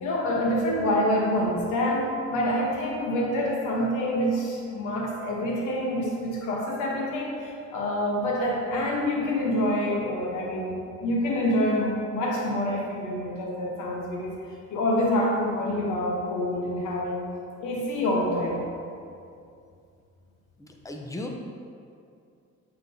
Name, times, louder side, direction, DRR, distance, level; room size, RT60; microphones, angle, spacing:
voice 1, 0.0-14.4 14.7-17.3 17.6-18.7, left 1 dB, 85° left, -2 dB, 1.2 m, -26 dB
voice 2, 20.6-21.3, left 2 dB, 10° left, 2 dB, 0.7 m, -36 dB
7.8 x 4.6 x 2.8 m, 2.4 s
cardioid pair, 90°, 30 cm